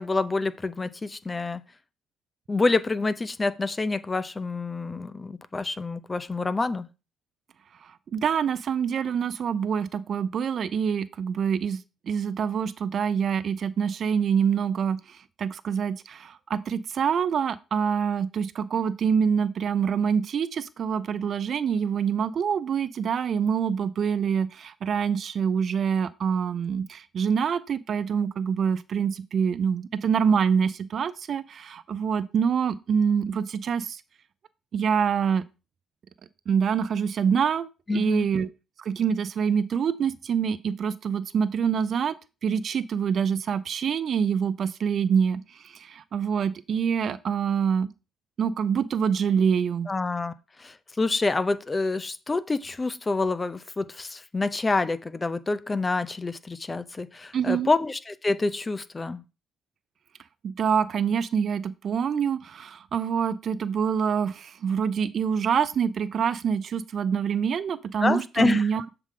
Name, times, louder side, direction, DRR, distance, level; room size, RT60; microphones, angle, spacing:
voice 1, 0.0-1.6 2.5-6.9 37.9-38.3 49.9-50.3 50.6-59.2 68.0-68.7, left 3 dB, 25° left, 0.6 m, -27 dB
voice 2, 8.1-34.0 34.7-35.4 36.5-38.5 38.8-42.2 42.4-47.9 48.4-49.9 57.3-57.7 60.4-68.8, right 7 dB, 55° right, 0.5 m, -26 dB
7.4 x 4.9 x 3.7 m
cardioid pair, 85°, 0 cm